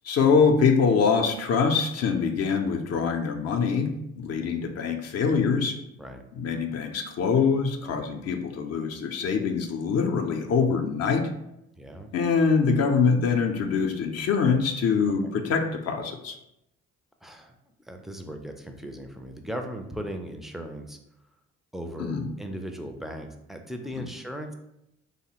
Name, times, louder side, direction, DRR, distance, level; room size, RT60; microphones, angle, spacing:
voice 1, 0.0-5.8 6.3-11.3 12.1-16.4 22.0-22.3 24.0-24.1, left 5 dB, 60° left, 5 dB, 0.5 m, -24 dB
voice 2, 11.8-12.1 17.2-17.5 17.9-21.0 21.7-24.5, equal, ahead, 4 dB, 0.3 m, -37 dB
3.1 x 2.1 x 2.8 m, 0.84 s
supercardioid pair, 60°, 29 cm